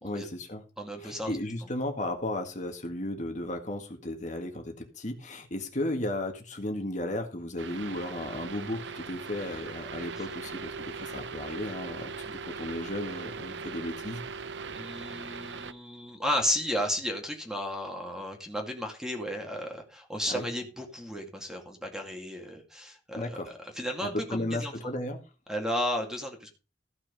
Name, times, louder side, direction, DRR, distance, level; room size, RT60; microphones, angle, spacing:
voice 1, 0.0-0.6 1.0-14.2 20.3-20.5 23.2-23.5 24.0-25.2, left 1 dB, 45° left, 4 dB, 1.8 m, -35 dB
voice 2, 0.8-1.4 10.2-10.3 14.8-24.7 25.5-26.5, equal, 5° right, 2 dB, 2.4 m, -33 dB
sound 1, 7.6-15.7, right 5 dB, 75° right, 0.7 m, -40 dB
14.5 x 6.2 x 5.3 m, 0.33 s
head